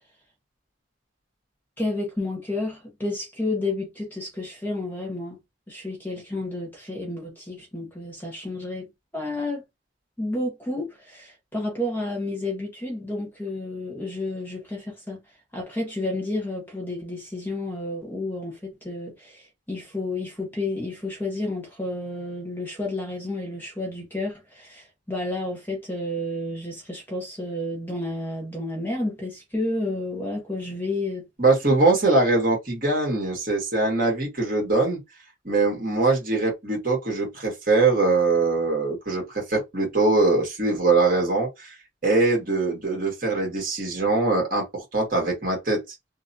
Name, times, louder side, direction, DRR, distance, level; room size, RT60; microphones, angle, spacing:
voice 1, 1.8-5.4 5.7-8.9 9.1-9.7 10.2-15.2 15.5-31.3, left 2 dB, 10° left, 1.2 m, -31 dB
voice 2, 31.4-35.0 35.4-41.7 42.0-45.8, right 3 dB, 45° right, 1.7 m, -22 dB
3.6 x 2.2 x 2.7 m
head